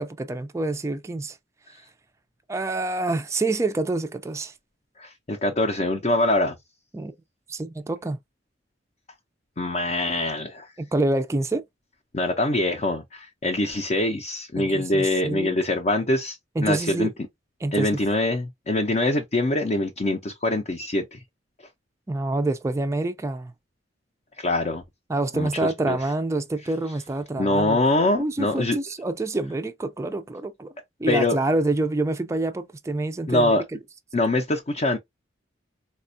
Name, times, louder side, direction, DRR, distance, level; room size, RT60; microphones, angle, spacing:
voice 1, 0.0-1.4 2.5-4.5 6.9-7.1 7.5-8.2 10.8-11.6 14.6-15.6 16.6-17.1 17.6-18.0 22.1-23.5 25.1-27.8 28.2-30.7 31.0-33.6, right 2 dB, 15° right, 0.4 m, -27 dB
voice 2, 5.0-6.6 9.6-10.7 12.1-16.4 16.6-17.1 17.7-21.2 24.4-24.8 25.3-26.0 27.4-28.8 31.1-31.4 33.3-33.6 34.1-35.0, left 2 dB, 35° left, 0.5 m, -24 dB
4.2 x 2.3 x 2.5 m
head